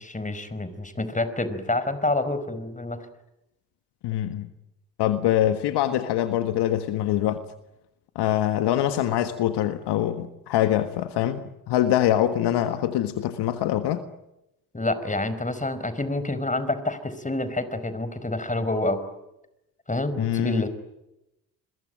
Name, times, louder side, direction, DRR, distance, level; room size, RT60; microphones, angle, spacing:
voice 1, 0.0-3.1 14.7-19.0 19.9-20.7, left 2 dB, 15° left, 4.8 m, -28 dB
voice 2, 4.0-4.5 5.0-7.4 8.1-14.0 20.2-20.6, left 12 dB, 70° left, 1.6 m, -24 dB
29.5 x 22.0 x 9.0 m
hypercardioid pair, 45°, 42 cm